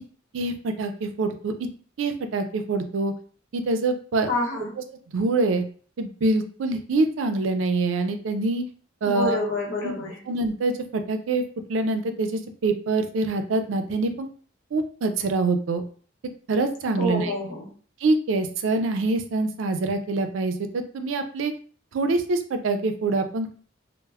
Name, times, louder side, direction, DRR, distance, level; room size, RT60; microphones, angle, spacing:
voice 1, 0.3-1.7 2.0-3.1 3.5-4.3 5.1-5.7 6.0-8.6 9.0-9.4 9.8-9.9 10.3-11.4 11.7-14.3 14.7-15.8 16.5-17.3 18.0-21.5 21.9-23.5, right 3 dB, 70° right, 7 dB, 0.4 m, -25 dB
voice 2, 4.3-4.7 9.0-10.2 16.9-17.7, left 1 dB, 75° left, -1 dB, 0.9 m, -28 dB
2.2 x 2.0 x 3.3 m, 0.43 s
head